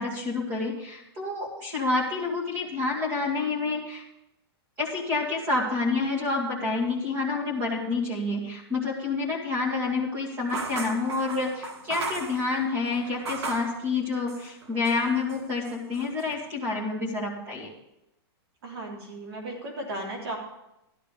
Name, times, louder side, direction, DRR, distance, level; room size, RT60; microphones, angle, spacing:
voice 1, 0.0-4.0 4.8-17.7, left 3 dB, 20° right, 0 dB, 2.4 m, -28 dB
sound 1, 10.5-13.8 14.3-15.0 15.3-16.3, right 3 dB, 90° right, 1.7 m, -36 dB
voice 2, 18.6-20.4, right 1 dB, 70° right, -1 dB, 3.4 m, -35 dB
13.5 x 12.0 x 3.5 m, 0.88 s
supercardioid pair, 180°, 14 cm